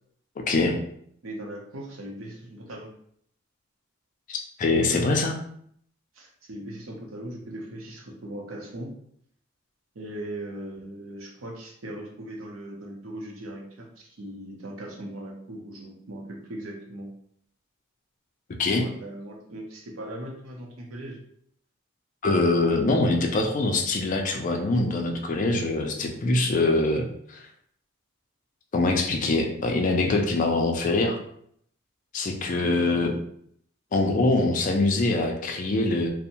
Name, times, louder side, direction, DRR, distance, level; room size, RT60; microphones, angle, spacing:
voice 1, 0.5-0.8 4.3-5.4 18.6-18.9 22.2-27.4 28.7-31.2 32.1-33.1 33.9-36.1, left 2 dB, 40° left, 3 dB, 0.3 m, -24 dB
voice 2, 1.2-2.9 6.1-8.9 9.9-17.1 18.8-21.2 32.6-33.2, right 1 dB, 80° right, 0 dB, 0.6 m, -39 dB
2.6 x 2.0 x 2.8 m, 0.67 s
head